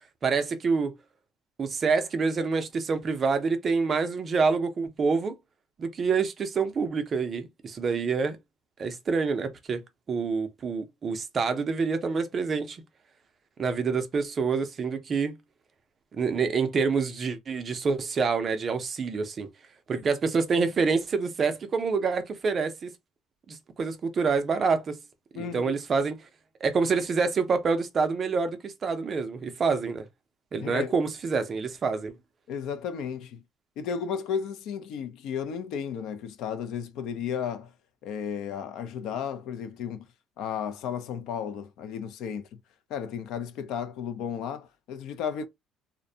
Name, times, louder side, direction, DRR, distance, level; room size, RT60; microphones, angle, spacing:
voice 1, 0.2-1.0 1.6-5.3 5.8-8.4 8.8-9.8 10.1-12.8 13.6-15.4 16.1-19.5 19.9-22.9 23.5-25.0 25.3-26.2 26.6-30.0 30.5-32.1, right 5 dB, 30° right, 0.4 m, -27 dB
voice 2, 25.3-25.7 30.6-30.9 32.5-33.4 33.8-37.7 38.0-40.1 40.4-42.6 42.9-45.4, left 7 dB, 65° left, 0.4 m, -33 dB
2.5 x 2.1 x 2.6 m
cardioid pair, 155°, 0 cm